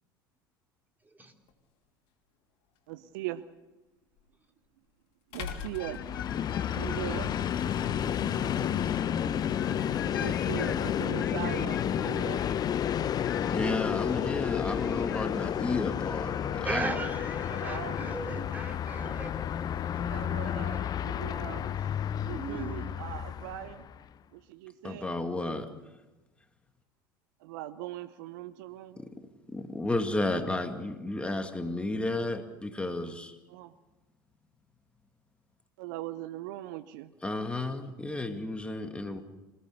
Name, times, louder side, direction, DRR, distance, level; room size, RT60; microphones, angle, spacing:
sound 1, 1.5-1.6 4.2-4.3 5.3-6.9, left 6 dB, 55° left, 3.3 m, -41 dB
voice 1, 2.9-3.5 5.3-6.0 6.7-7.4 10.2-12.5 17.5-18.5 20.0-21.8 22.2-23.9 24.3-25.1 27.4-29.0 33.5-33.7 35.8-37.1, right 15 dB, 65° right, 14 dB, 0.9 m, -40 dB
sound 2, 5.4-15.4, left 10 dB, 80° left, 0.8 m, -42 dB
Train, 5.9-24.0, left 9 dB, 35° left, 0.8 m, -31 dB
voice 2, 13.5-16.9 18.4-18.5 24.8-25.7 29.0-29.1 29.5-33.4 37.2-39.2, left 2 dB, 10° left, 6 dB, 2.1 m, -32 dB
voice 3, 16.6-19.3 22.3-22.8, right 2 dB, 15° right, 3 dB, 3.6 m, -36 dB
27.5 x 18.0 x 6.9 m, 1.1 s
hypercardioid pair, 70°, 11 cm